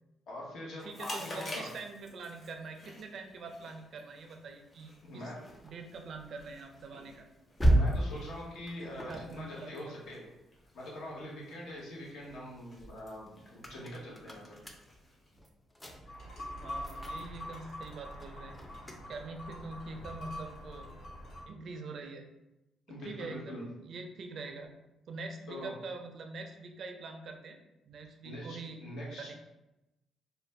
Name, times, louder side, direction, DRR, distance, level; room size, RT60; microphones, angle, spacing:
voice 1, 0.3-1.7 5.0-5.3 7.7-10.2 10.7-14.6 22.9-23.6 25.5-25.7 28.2-29.4, left 1 dB, 75° left, -4 dB, 0.9 m, -43 dB
Chewing mastication, 0.8-15.4, left 1 dB, 40° left, 1.0 m, -51 dB
voice 2, 0.8-5.3 5.6-7.3 8.9-9.9 16.5-18.6 19.1-20.9 21.5-22.3 22.9-24.7 25.1-27.6 27.9-28.8 29.2-29.3, right 3 dB, 60° right, 4 dB, 0.4 m, -44 dB
sound 1, 4.7-11.3 11.7-21.5, right 1 dB, 15° left, 0.4 m, -37 dB
sound 2, 16.1-21.4, left 1 dB, 60° left, 1.3 m, -45 dB
2.5 x 2.1 x 3.2 m, 0.95 s
cardioid pair, 90°, 0 cm